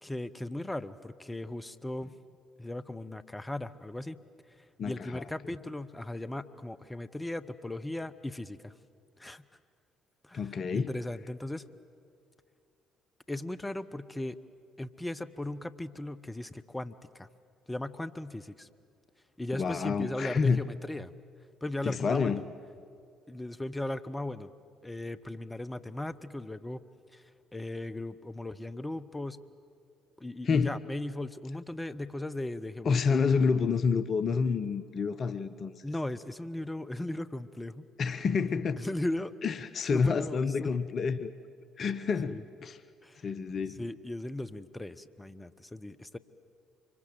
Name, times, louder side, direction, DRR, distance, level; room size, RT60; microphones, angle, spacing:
voice 1, 0.0-2.1 2.6-4.2 4.8-8.7 9.2-9.4 10.2-11.7 13.3-14.4 14.8-17.3 17.7-18.7 19.4-21.1 21.6-22.4 23.3-24.5 24.8-26.8 27.1-27.2 27.5-29.4 30.2-33.3 35.8-37.9 38.8-39.3 39.9-40.7 42.2-42.4 43.0-43.3 43.8-46.2, left 1 dB, 15° left, 12 dB, 1.0 m, -37 dB
voice 2, 4.8-5.2 10.3-10.9 19.5-20.6 21.8-22.4 30.5-30.8 32.8-35.7 38.0-38.8 39.4-41.3 41.8-42.8 43.2-43.8, left 5 dB, 45° left, 14 dB, 0.7 m, -28 dB
25.0 x 23.5 x 7.8 m, 2.3 s
figure-of-eight pair, 50°, 0 cm